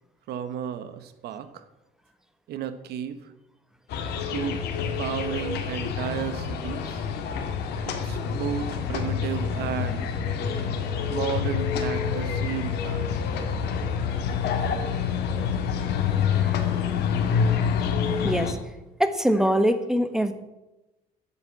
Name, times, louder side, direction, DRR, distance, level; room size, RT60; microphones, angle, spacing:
voice 1, 0.3-1.6 2.5-3.3 4.3-4.6 5.0-7.1 7.9-10.1 11.1-13.2, right 9 dB, 75° right, 11 dB, 1.3 m, -33 dB
sound 1, 3.9-18.5, left 7 dB, 80° left, 2.1 m, -27 dB
voice 2, 18.2-18.6 19.0-20.3, equal, 5° right, 9 dB, 1.3 m, -23 dB
12.0 x 8.2 x 8.4 m, 1.0 s
cardioid pair, 110°, 17 cm